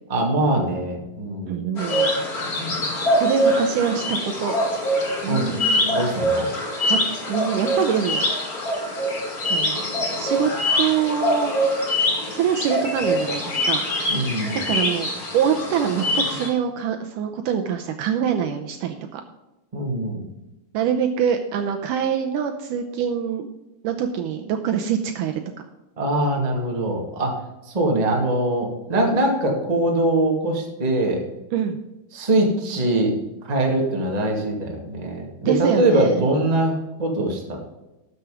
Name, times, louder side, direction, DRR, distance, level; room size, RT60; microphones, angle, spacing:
voice 1, 0.1-1.6 5.3-5.5 5.9-6.5 14.1-14.6 19.7-20.3 26.0-27.3 27.7-31.2 32.1-33.1 33.4-37.6, right 1 dB, 15° right, 0 dB, 1.4 m, -22 dB
voice 2, 1.5-2.1 3.0-4.6 5.2-6.1 6.7-7.0 7.3-8.2 9.4-9.9 10.2-10.5 10.8-11.5 12.3-14.2 14.7-15.1 15.3-19.2 20.7-23.5 23.8-25.4 29.0-29.2 31.5-31.8 35.5-36.2, right 8 dB, 75° right, 5 dB, 2.1 m, -25 dB
sound 1, 1.8-16.5, equal, 30° left, 2.2 m, -24 dB
12.5 x 7.0 x 5.0 m, 1.0 s
omnidirectional pair, 4.2 m